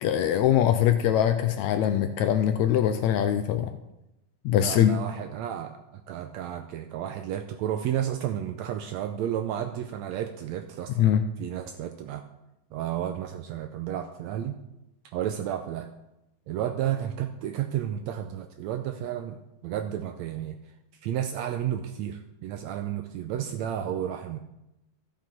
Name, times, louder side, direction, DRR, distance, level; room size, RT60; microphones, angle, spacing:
voice 1, 0.0-3.7 4.5-4.9 11.0-11.2, left 10 dB, 80° left, 8 dB, 1.7 m, -22 dB
voice 2, 4.5-12.2 12.7-14.5 15.1-15.9 16.5-19.4 19.6-20.6 21.0-24.4, right 10 dB, 80° right, 6 dB, 1.6 m, -32 dB
13.5 x 7.8 x 4.4 m, 0.91 s
omnidirectional pair, 3.7 m